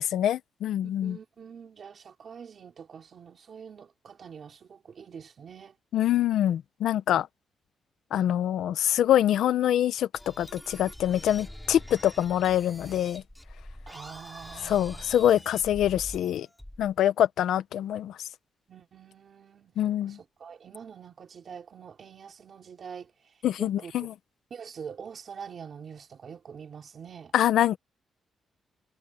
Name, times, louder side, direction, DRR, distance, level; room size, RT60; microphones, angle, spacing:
voice 1, 0.0-1.2 5.9-7.3 8.1-13.2 14.6-16.5 16.8-18.2 19.8-20.2 23.4-24.1 27.3-27.8, left 11 dB, 90° left, 0.8 m, -25 dB
voice 2, 0.8-5.8 13.9-15.3 18.7-19.7 20.0-24.1 24.5-27.3, right 7 dB, 40° right, 3.6 m, -45 dB
sound 1, 10.1-16.9, left 1 dB, 5° left, 3.0 m, -45 dB
wide cardioid pair, 180°, 0 cm